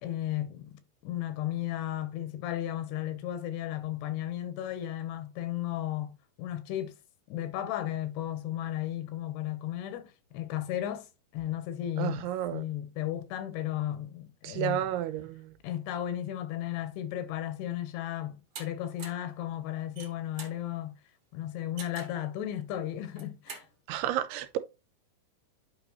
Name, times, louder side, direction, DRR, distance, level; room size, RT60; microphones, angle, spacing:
voice 1, 0.0-7.0 7.3-11.1 11.3-15.0 15.6-21.0 21.3-23.7, left 12 dB, 90° left, 3.2 m, -34 dB
voice 2, 12.0-12.6 14.4-15.5 23.9-24.6, right 12 dB, 85° right, 2.8 m, -31 dB
sound 1, 18.5-18.7 19.0-19.3 19.8-20.6 21.8-22.2 23.0-23.7, right 5 dB, 45° right, 2.3 m, -44 dB
8.8 x 5.6 x 3.0 m
omnidirectional pair, 4.6 m